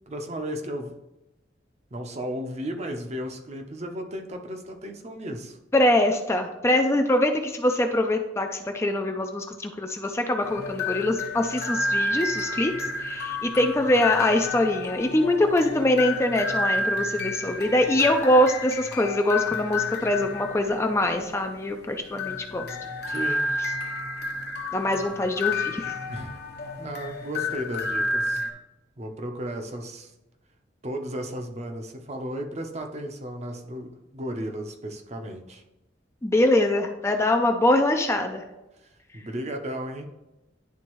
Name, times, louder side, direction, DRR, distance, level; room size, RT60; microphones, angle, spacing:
voice 1, 0.1-0.9 1.9-5.6 23.1-23.5 26.1-26.4 26.8-28.4 29.0-30.1 30.8-35.6 39.1-40.1, equal, 35° right, 4 dB, 0.7 m, -34 dB
voice 2, 5.7-12.7 13.0-22.7 24.7-26.0 36.2-38.4, left 1 dB, 15° left, 4 dB, 0.4 m, -23 dB
sound 1, 10.4-28.5, left 2 dB, 60° left, 0.8 m, -30 dB
10.5 x 3.5 x 3.0 m, 0.97 s
head